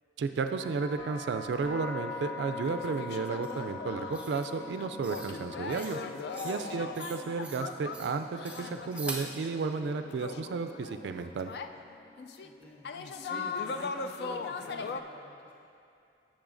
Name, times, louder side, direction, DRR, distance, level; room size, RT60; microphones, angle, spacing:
voice 1, 0.2-6.0 6.4-11.5, right 4 dB, 75° right, 7 dB, 0.3 m, -33 dB
sound 1, 0.6-14.5, left 4 dB, 80° left, 1.1 m, -45 dB
sound 2, 2.1-2.2 2.5-11.7 12.2-12.5 12.8-15.0, left 4 dB, 60° left, 0.3 m, -39 dB
sound 3, 3.4-3.6 4.1-4.5 5.0-5.4 5.7-6.0 6.3-6.6 6.9-7.6 7.9-8.1 8.4-9.3, right 3 dB, 5° right, 0.6 m, -43 dB
voice 2, 12.4-12.9 13.3-15.5, equal, 10° left, -6 dB, 1.4 m, -49 dB
12.0 x 7.4 x 2.5 m, 2.6 s
head